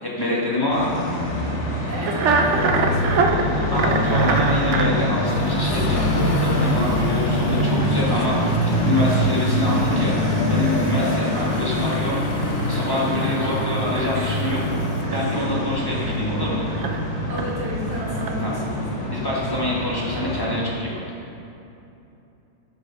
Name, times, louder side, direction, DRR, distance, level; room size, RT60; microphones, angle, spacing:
voice 1, 0.0-0.9 3.7-8.4 8.7-10.1 10.5-12.2 12.7-14.7 15.1-16.7 18.4-18.6 19.1-21.0, left 1 dB, 15° left, -6 dB, 1.3 m, -26 dB
sound 1, 0.7-20.6, equal, 40° left, 1.3 m, -24 dB
voice 2, 1.9-3.7 10.9-11.4 13.1-13.8 14.1-14.4 15.1-16.2 17.3-19.3, right 1 dB, 55° right, -6 dB, 2.5 m, -33 dB
sound 2, 2.0-4.9 6.2-6.8 7.2-7.3 7.6-16.2 16.5-17.7 18.0-18.3, right 4 dB, 80° right, 0.6 m, -28 dB
sound 3, 5.3-15.1, left 5 dB, 75° left, 1.3 m, -36 dB
8.0 x 6.3 x 5.8 m, 2.9 s
omnidirectional pair, 2.1 m